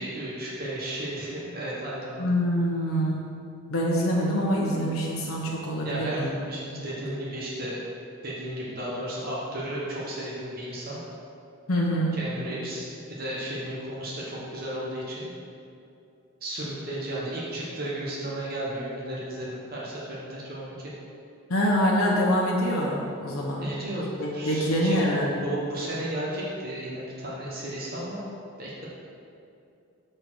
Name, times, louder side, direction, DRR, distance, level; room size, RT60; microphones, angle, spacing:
voice 1, 0.0-2.2 5.8-7.8 8.2-11.0 12.1-15.3 16.4-20.9 23.6-25.0 25.4-28.2 28.6-28.9, right 1 dB, 45° right, -6 dB, 1.3 m, -34 dB
voice 2, 2.2-3.4 3.7-6.3 11.7-12.2 21.5-23.6 24.2-25.5, equal, 85° left, -4 dB, 1.0 m, -25 dB
6.6 x 4.4 x 6.3 m, 2.6 s
head